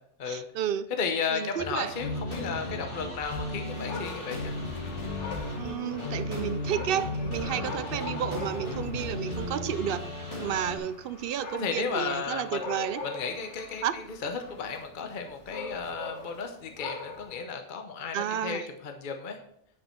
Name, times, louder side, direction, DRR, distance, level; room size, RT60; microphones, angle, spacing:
voice 1, 0.3-0.9 1.3-1.9 5.6-10.1 10.4-13.0 13.8-14.0 18.1-18.6, right 9 dB, 60° right, 14 dB, 0.6 m, -31 dB
voice 2, 0.9-4.5 7.4-7.8 8.2-8.3 10.3-10.8 11.5-12.7 13.0-19.4, left 5 dB, 50° left, 5 dB, 0.9 m, -34 dB
sound 1, 1.6-10.8, left 2 dB, 25° left, 2.5 m, -35 dB
Dog, 3.7-17.4, left 4 dB, 85° left, 1.5 m, -43 dB
9.7 x 5.5 x 4.3 m, 0.71 s
omnidirectional pair, 1.2 m